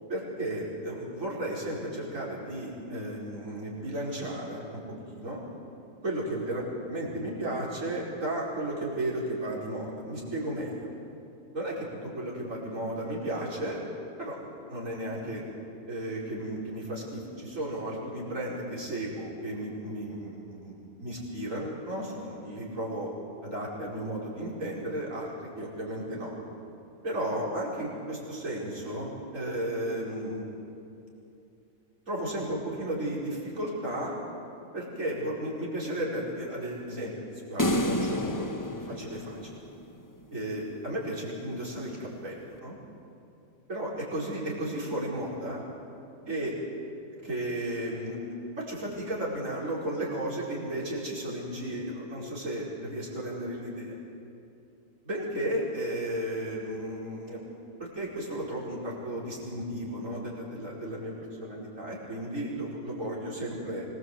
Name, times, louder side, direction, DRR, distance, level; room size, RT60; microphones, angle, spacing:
voice 1, 0.1-4.8 5.1-5.4 6.0-10.9 11.5-13.8 14.2-14.4 14.7-15.4 15.9-23.1 23.4-26.3 27.0-30.5 32.1-34.2 34.7-38.6 39.0-39.5 40.3-42.8 43.7-45.6 46.3-46.6 47.2-48.2 48.6-54.0 55.0-57.4 57.8-61.1 61.4-63.9, right 1 dB, 70° right, -5 dB, 5.5 m, -34 dB
sound 1, 37.6-40.0, left 1 dB, 15° left, 1.0 m, -29 dB
25.0 x 20.0 x 8.1 m, 2.8 s
omnidirectional pair, 1.4 m